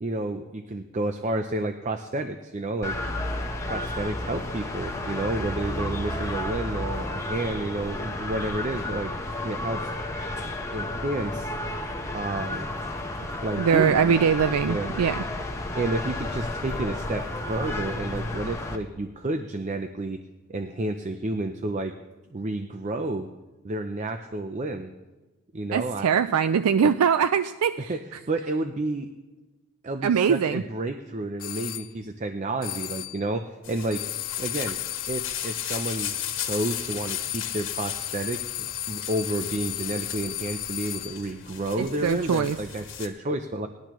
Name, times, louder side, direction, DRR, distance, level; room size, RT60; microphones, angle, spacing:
voice 1, 0.0-3.0 3.7-9.1 9.4-9.9 10.7-11.5 12.1-12.7 13.4-14.2 14.6-15.0 15.7-20.2 20.5-21.9 22.3-23.3 23.6-24.9 25.5-26.2 27.9-28.0 28.3-29.1 29.8-34.0 34.4-34.8 35.1-43.7, right 2 dB, 30° right, 7 dB, 0.5 m, -30 dB
sound 1, 2.8-18.8, left 1 dB, 15° left, 0.9 m, -32 dB
voice 2, 13.6-15.2 25.7-27.9 30.0-30.6 41.8-42.6, right 7 dB, 90° right, 11 dB, 0.4 m, -22 dB
sound 2, 31.4-31.9 32.6-33.3 33.9-41.3, left 14 dB, 40° left, 0.4 m, -34 dB
sound 3, 33.6-43.1, left 8 dB, 55° left, 1.6 m, -38 dB
19.5 x 11.5 x 3.1 m, 1.2 s
head